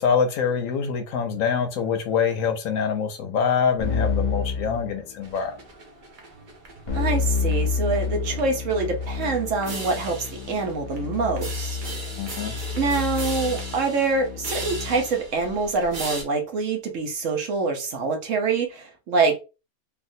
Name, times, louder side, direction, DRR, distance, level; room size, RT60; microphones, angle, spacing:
voice 1, 0.0-5.5 12.2-12.6, left 6 dB, 70° left, 1.0 m, -25 dB
Keyboard (musical), 3.8-5.5 6.9-15.2, left 5 dB, 40° left, 0.8 m, -29 dB
sound 1, 5.2-16.2, right 2 dB, 45° right, 0.7 m, -38 dB
voice 2, 6.9-10.2 10.5-11.8 12.7-19.4, right 4 dB, 65° right, 1.1 m, -25 dB
3.5 x 2.4 x 2.6 m
omnidirectional pair, 1.5 m